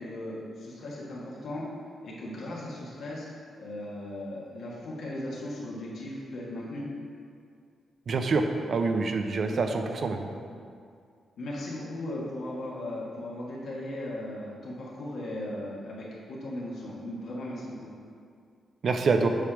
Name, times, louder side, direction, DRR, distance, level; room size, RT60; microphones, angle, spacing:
voice 1, 0.0-1.6 2.0-3.3 3.6-6.9 11.4-17.8, left 1 dB, 75° left, -6 dB, 1.5 m, -37 dB
voice 2, 8.1-10.3 18.8-19.3, right 4 dB, 50° right, 5 dB, 0.6 m, -26 dB
8.2 x 3.4 x 6.0 m, 2.2 s
cardioid pair, 125°, 0 cm